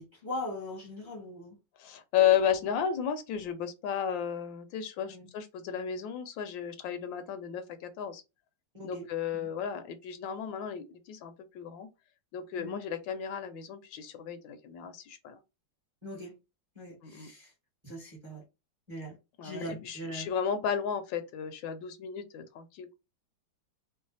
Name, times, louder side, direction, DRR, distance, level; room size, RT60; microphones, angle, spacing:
voice 1, 0.0-1.6 5.1-5.3 8.7-9.1 9.3-9.5 12.6-12.8 16.0-16.3 16.7-17.5 17.8-18.4 18.9-19.2 19.4-20.3, left 1 dB, 20° right, 0.9 m, -40 dB
voice 2, 1.8-8.2 8.8-11.9 12.3-15.4 17.0-17.3 19.4-22.9, left 8 dB, 80° left, 1.3 m, -33 dB
3.2 x 2.1 x 3.9 m
omnidirectional pair, 2.1 m